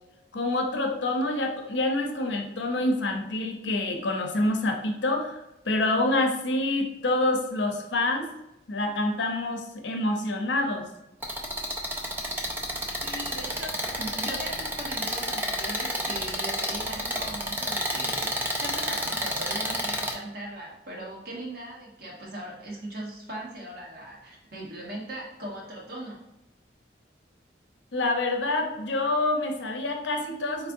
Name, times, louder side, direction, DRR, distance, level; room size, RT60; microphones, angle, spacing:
voice 1, 0.3-8.3 8.7-10.9 27.9-30.7, left 2 dB, 75° left, 2 dB, 0.7 m, -27 dB
sound 1, 11.2-20.1, equal, 10° right, 0.4 m, -30 dB
voice 2, 13.0-26.2, right 1 dB, 55° right, -3 dB, 1.2 m, -39 dB
4.6 x 3.2 x 2.6 m, 0.92 s
head